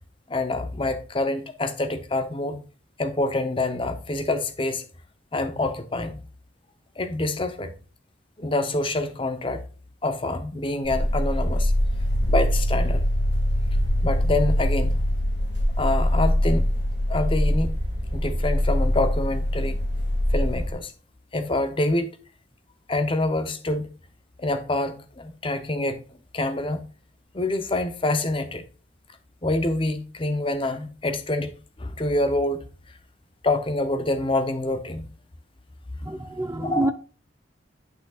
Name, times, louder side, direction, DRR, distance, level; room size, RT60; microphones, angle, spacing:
voice 1, 0.3-2.6 3.0-4.8 5.3-6.2 7.0-7.7 8.4-9.6 10.0-11.7 12.3-13.0 14.0-15.0 15.8-16.7 17.1-17.7 18.1-19.8 20.3-20.9 21.3-22.2 22.9-23.9 24.4-26.0 26.3-26.8 27.3-28.6 29.4-31.5 31.8-32.6 33.4-35.1 36.6-36.9, left 2 dB, 25° left, 0.7 m, -26 dB
sound 1, 10.8-20.7, equal, 60° left, 2.6 m, -23 dB
voice 2, 36.0-36.9, right 2 dB, 15° right, 0.5 m, -27 dB
8.4 x 6.6 x 2.4 m
head